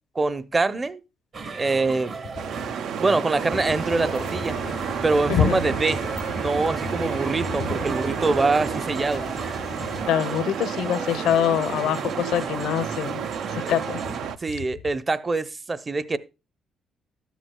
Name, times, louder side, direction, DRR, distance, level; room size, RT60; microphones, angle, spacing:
voice 1, 0.1-1.0 1.5-2.1 3.0-4.6 5.0-6.1 6.4-9.2 14.4-16.2, right 3 dB, 30° right, 0.7 m, -24 dB
sound 1, 1.3-14.2, right 4 dB, 55° right, 1.3 m, -36 dB
sound 2, 2.3-14.4, right 8 dB, 80° right, 0.5 m, -31 dB
sound 3, 3.5-10.0, left 5 dB, 45° left, 0.5 m, -36 dB
voice 2, 10.1-13.2 13.5-14.0, left 9 dB, 90° left, 0.7 m, -24 dB
13.0 x 10.5 x 2.2 m
cardioid pair, 90°, 0 cm